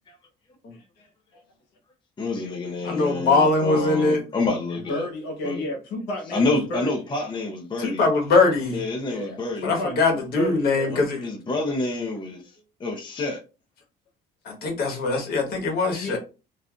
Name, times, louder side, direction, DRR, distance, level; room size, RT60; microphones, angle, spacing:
voice 1, 1.0-1.4 4.9-6.9 9.0-10.9 16.0-16.2, equal, 85° left, 1.0 m, -32 dB
voice 2, 2.2-5.1 5.4-5.6 6.3-8.1 8.7-9.7 10.9-12.4 12.8-13.4, left 3 dB, 30° left, 0.7 m, -28 dB
voice 3, 2.8-4.2 7.8-8.8 9.6-11.2 14.4-16.2, left 3 dB, 65° left, 1.3 m, -22 dB
3.2 x 2.5 x 2.4 m
cardioid pair, 110°, 17 cm